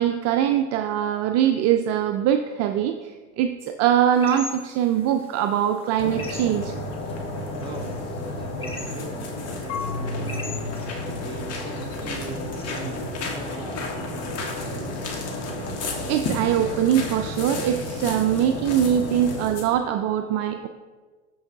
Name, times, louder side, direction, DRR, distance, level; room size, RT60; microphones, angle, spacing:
voice 1, 0.0-6.7 16.1-20.7, right 10 dB, 45° right, 6 dB, 0.4 m, -22 dB
sound 1, 4.1-13.5, left 2 dB, 15° left, 1.2 m, -43 dB
sound 2, 6.0-19.7, left 2 dB, 45° left, 1.5 m, -32 dB
voice 2, 7.6-15.0, right 3 dB, 10° right, 1 dB, 1.2 m, -40 dB
Marimba xylophone / Wood, 9.7-12.6, left 4 dB, 85° left, 1.0 m, -35 dB
13.0 x 4.6 x 2.7 m, 1.4 s
hypercardioid pair, 90°, 35 cm